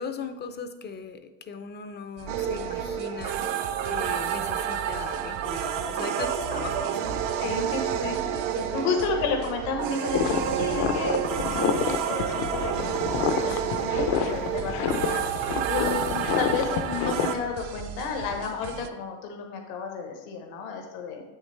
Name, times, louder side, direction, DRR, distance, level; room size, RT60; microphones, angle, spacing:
voice 1, 0.0-3.4 3.8-7.0 8.5-9.1 15.5-16.0, left 6 dB, 25° left, 9 dB, 0.4 m, -38 dB
sound 1, 2.2-18.9, right 9 dB, 45° right, 0.4 m, -41 dB
sound 2, 2.3-17.4, right 8 dB, 70° right, 0.8 m, -29 dB
voice 2, 7.4-8.2 8.7-15.2 15.7-21.2, left 4 dB, 85° left, 3 dB, 1.2 m, -32 dB
sound 3, 10.1-17.3, left 9 dB, 65° left, 0.6 m, -29 dB
7.8 x 6.4 x 3.2 m, 1.1 s
cardioid pair, 125°, 47 cm